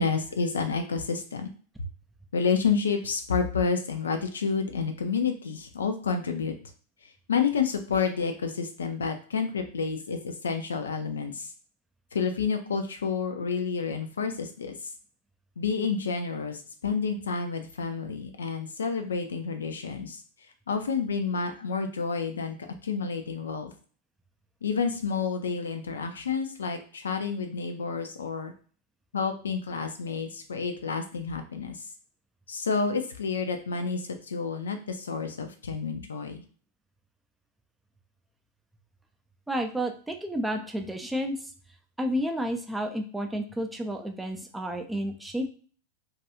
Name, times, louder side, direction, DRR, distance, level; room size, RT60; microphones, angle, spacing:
voice 1, 0.0-1.5 2.3-6.5 7.3-11.5 12.1-14.8 15.6-20.2 20.7-22.6 22.8-23.7 24.6-28.5 29.1-31.8 32.5-36.4, left 5 dB, 70° left, 6 dB, 0.4 m, -29 dB
voice 2, 39.5-41.4 42.0-45.5, equal, 5° right, 4 dB, 0.4 m, -31 dB
2.3 x 2.2 x 2.9 m, 0.41 s
figure-of-eight pair, 90°, 0 cm